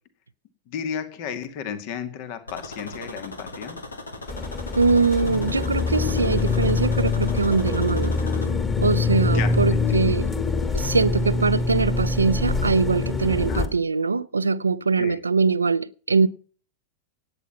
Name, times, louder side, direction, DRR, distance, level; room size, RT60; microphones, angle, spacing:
voice 1, 0.7-3.8 8.2-8.4 9.3-9.6 13.5-13.7 15.0-15.2, left 8 dB, 45° left, 2.1 m, -33 dB
sound 1, 2.5-8.5, left 2 dB, 75° left, 2.2 m, -38 dB
sound 2, 4.3-13.7, left 4 dB, 20° left, 2.7 m, -24 dB
voice 2, 4.8-8.2 8.8-10.3 10.7-16.3, right 4 dB, 80° right, 0.6 m, -22 dB
17.5 x 9.3 x 5.6 m
figure-of-eight pair, 90°, 0 cm